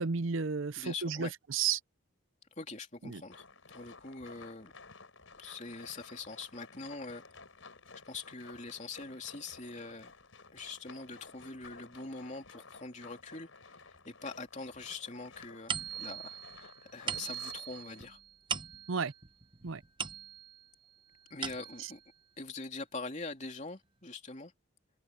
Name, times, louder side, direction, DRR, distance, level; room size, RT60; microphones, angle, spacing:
voice 1, 0.0-1.8 3.0-3.2 18.9-19.1 19.6-19.8 21.8-21.9, right 6 dB, 70° right, 0.6 m, -33 dB
voice 2, 0.8-1.3 2.6-4.7 5.4-7.2 8.0-10.1 10.5-18.2 21.3-22.0 22.4-24.5, left 3 dB, 35° left, 3.2 m, -43 dB
sound 1, 3.3-18.1, left 4 dB, 75° left, 5.0 m, -54 dB
sound 2, 15.7-20.7 21.1-22.0, right 7 dB, 25° right, 0.8 m, -40 dB
head